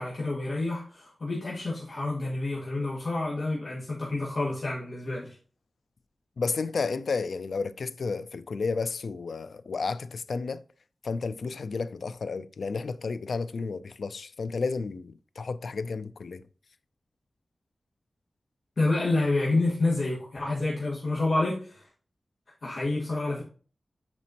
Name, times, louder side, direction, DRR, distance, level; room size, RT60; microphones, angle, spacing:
voice 1, 0.0-5.3 18.8-21.8 22.6-23.4, left 2 dB, 65° left, 1.6 m, -28 dB
voice 2, 6.4-10.6 11.0-16.4, left 4 dB, 90° left, 0.3 m, -32 dB
8.6 x 4.3 x 2.9 m
wide cardioid pair, 105°, 0 cm